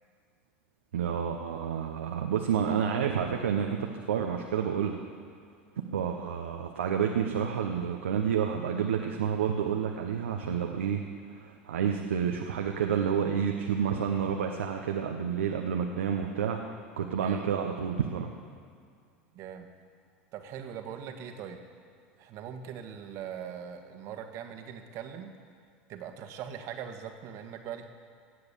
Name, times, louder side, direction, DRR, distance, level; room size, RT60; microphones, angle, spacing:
voice 1, 0.9-5.0 5.9-11.0 11.3-16.6 17.0-18.3, right 8 dB, 85° right, 3 dB, 0.9 m, -29 dB
voice 2, 19.3-19.7 20.3-21.6 22.2-25.3 25.9-27.9, right 8 dB, 55° right, 6 dB, 1.6 m, -41 dB
17.5 x 8.0 x 6.9 m, 2.2 s
hypercardioid pair, 85°, 6 cm